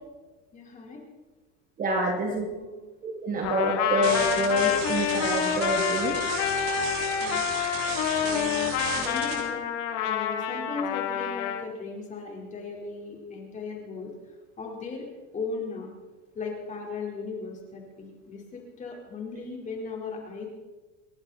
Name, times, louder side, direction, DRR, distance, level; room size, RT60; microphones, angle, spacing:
voice 1, 0.5-1.0 2.3-2.5 3.3-3.5 7.2-7.4 8.2-9.6 10.0-14.1 14.6-15.1 15.3-15.9 16.3-20.5, left 4 dB, 20° left, -1 dB, 4.4 m, -37 dB
voice 2, 1.8-2.5 3.0-6.3, equal, 25° right, 2 dB, 2.5 m, -26 dB
Trumpet, 3.4-11.6, left 9 dB, 45° left, 1.9 m, -28 dB
sound 1, 4.0-9.3, right 5 dB, 60° right, 7.6 m, -34 dB
29.0 x 11.5 x 4.3 m, 1.2 s
supercardioid pair, 150°, 36 cm